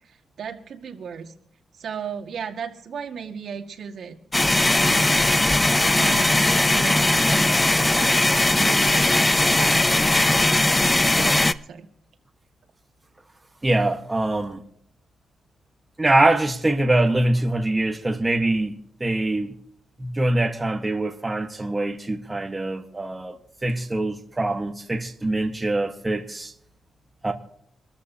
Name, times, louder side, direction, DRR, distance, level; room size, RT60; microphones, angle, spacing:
voice 1, 0.4-1.3 1.8-4.2 4.8-5.3 5.9-7.0 7.3-7.5 7.8-9.0 9.6-10.3 11.1-11.9, right 6 dB, 70° right, 1.8 m, -35 dB
sound 1, 4.3-11.5, left 2 dB, 15° left, 0.5 m, -19 dB
voice 2, 13.6-14.6 16.0-18.7 19.0-19.5 20.0-23.4 23.6-26.5 27.2-27.3, right 2 dB, 15° right, 1.3 m, -23 dB
26.5 x 13.5 x 2.8 m
cardioid pair, 115°, 0 cm